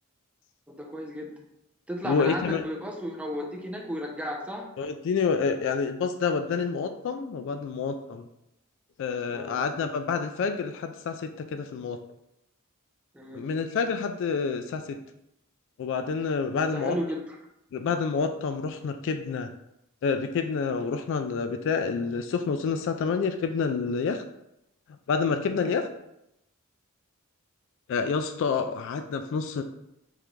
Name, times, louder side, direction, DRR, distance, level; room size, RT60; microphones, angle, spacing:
voice 1, 0.7-1.3 1.9-4.7 9.3-9.6 13.1-13.4 16.6-17.4 25.6-25.8, equal, 5° right, 0 dB, 0.6 m, -34 dB
voice 2, 2.0-2.6 4.8-8.2 9.0-12.0 13.3-15.0 15.8-17.0 17.7-19.5 20.0-24.2 25.1-25.9 27.9-29.6, left 5 dB, 60° left, 7 dB, 0.3 m, -28 dB
3.7 x 3.3 x 3.1 m, 0.82 s
head